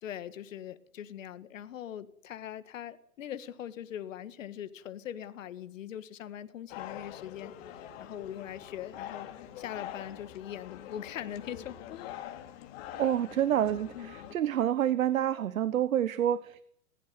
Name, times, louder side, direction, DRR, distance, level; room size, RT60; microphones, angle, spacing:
voice 1, 0.0-9.3 9.6-12.2 13.9-14.1, left 10 dB, 60° left, 13 dB, 2.0 m, -41 dB
sound 1, 6.7-14.3, left 11 dB, 45° left, 2.7 m, -44 dB
voice 2, 13.0-16.6, right 10 dB, 65° right, 16 dB, 1.2 m, -28 dB
21.0 x 15.5 x 9.6 m, 0.67 s
hypercardioid pair, 125°, 43 cm